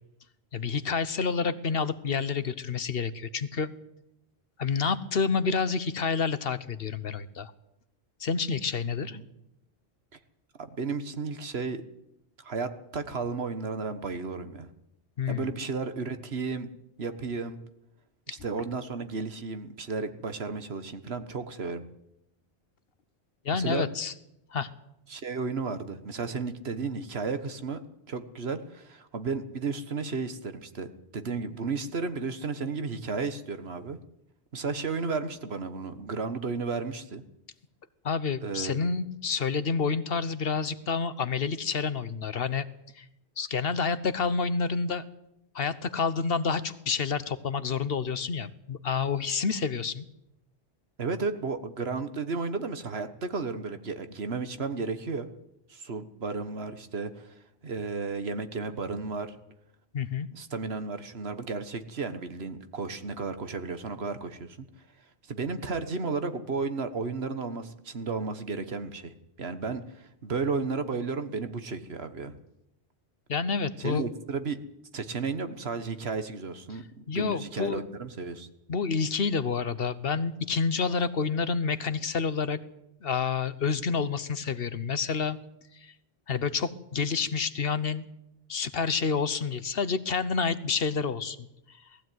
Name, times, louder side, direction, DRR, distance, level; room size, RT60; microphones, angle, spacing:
voice 1, 0.5-3.7 4.6-7.5 8.2-9.2 15.2-15.4 18.3-18.4 23.4-24.1 24.5-24.7 38.0-42.7 43.0-43.1 43.4-45.0 45.5-50.0 59.9-60.3 73.3-74.0 77.1-77.8 78.7-82.6 83.0-85.4 85.8-85.9 86.3-88.0 88.5-91.5, left 5 dB, 60° left, 14 dB, 1.1 m, -29 dB
voice 2, 10.6-11.8 12.4-14.7 15.3-16.7 17.0-17.6 18.3-21.8 23.5-23.9 25.1-27.8 28.1-30.9 31.1-34.0 34.5-37.2 38.4-38.9 51.0-55.3 55.7-59.3 60.3-64.6 65.3-72.4 73.8-74.6 74.9-78.5, right 4 dB, 65° right, 10 dB, 1.6 m, -33 dB
19.0 x 15.0 x 9.3 m, 0.84 s
omnidirectional pair, 1.1 m